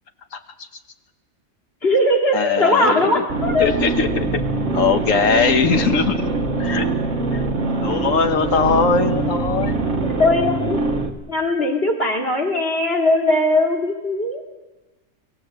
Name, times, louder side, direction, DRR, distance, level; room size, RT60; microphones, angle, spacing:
voice 1, 1.8-3.7 10.1-10.8 11.3-14.4, left 1 dB, 50° left, 1 dB, 3.0 m, -19 dB
voice 2, 2.3-3.3 3.6-4.4 4.7-6.3 6.6-6.9 7.3-7.4 7.8-9.9, left 5 dB, 85° left, 8 dB, 1.6 m, -20 dB
sound 1, 3.3-11.1, right 3 dB, 60° right, 1.7 m, -23 dB
24.5 x 17.0 x 7.8 m, 1.2 s
omnidirectional pair, 1.3 m